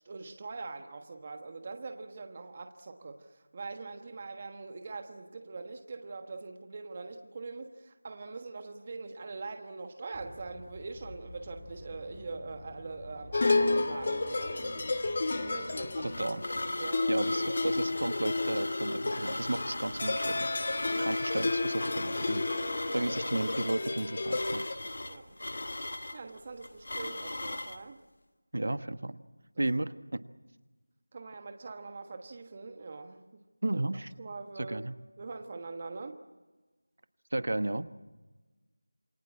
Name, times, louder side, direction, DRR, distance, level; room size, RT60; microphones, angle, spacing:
voice 1, 0.0-14.9 15.4-16.4 16.8-17.3 20.9-21.1 22.8-23.0 25.1-25.4 26.1-28.0 29.5-29.6 31.1-33.4 33.7-33.8 34.2-34.8 35.2-36.2, right 3 dB, 25° right, 6 dB, 1.3 m, -43 dB
sound 1, 10.1-16.3, left 1 dB, 15° left, 3.5 m, -50 dB
sound 2, 13.3-24.7, left 3 dB, 35° left, 1.7 m, -31 dB
sound 3, 15.7-27.8, left 2 dB, 55° left, 1.4 m, -38 dB
voice 2, 16.0-16.4 17.1-20.5 21.0-22.5 22.9-24.6 28.5-29.2 29.6-30.2 33.6-34.1 34.6-34.9 37.3-37.9, right 2 dB, 60° right, 12 dB, 1.4 m, -33 dB
28.0 x 22.0 x 7.4 m, 1.2 s
figure-of-eight pair, 175°, 0 cm